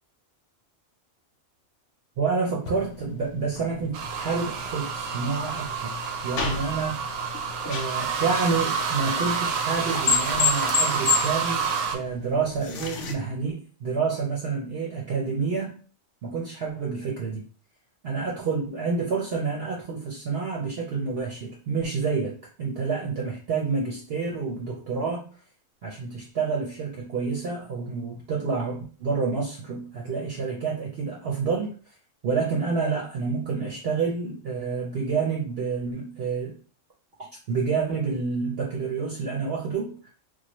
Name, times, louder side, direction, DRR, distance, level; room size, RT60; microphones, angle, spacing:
voice 1, 2.2-7.0 7.6-15.8 16.2-17.4 18.0-22.3 22.6-25.3 25.8-31.7 32.2-36.5 37.5-40.1, right 4 dB, 60° right, -2 dB, 0.8 m, -28 dB
sound 1, 2.6-13.1, left 6 dB, 70° left, 0.9 m, -32 dB
sound 2, 3.9-12.0, right 6 dB, 90° right, 1.0 m, -28 dB
3.1 x 2.2 x 2.9 m, 0.40 s
omnidirectional pair, 1.3 m